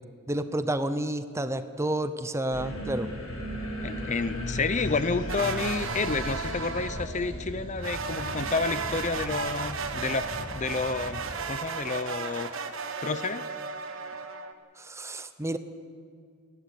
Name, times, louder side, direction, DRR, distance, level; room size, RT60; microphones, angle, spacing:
voice 1, 0.3-3.1 14.8-15.6, right 1 dB, 15° right, 11 dB, 0.8 m, -30 dB
sound 1, 2.5-11.3, equal, 75° left, 7.0 m, -37 dB
voice 2, 3.8-11.2 11.5-12.5 13.0-13.5, left 4 dB, 35° left, 13 dB, 0.6 m, -30 dB
sound 2, 5.3-7.2 7.8-14.5, right 4 dB, 65° right, 1.5 m, -35 dB
28.5 x 12.0 x 8.4 m, 2.3 s
head